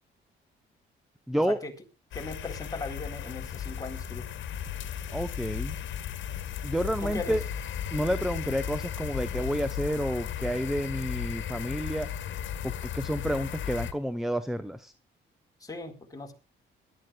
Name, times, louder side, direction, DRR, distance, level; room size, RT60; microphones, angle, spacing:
voice 1, 1.3-1.6 5.1-5.8 6.6-7.4 7.9-12.1 12.6-14.9, equal, ahead, 12 dB, 0.9 m, -30 dB
sound 1, 2.1-13.9, left 9 dB, 70° left, 1.7 m, -35 dB
voice 2, 2.1-4.3 7.0-7.4 15.6-16.3, left 3 dB, 15° left, 2 dB, 4.1 m, -38 dB
22.0 x 12.0 x 2.4 m, 0.29 s
cardioid pair, 90°, 20 cm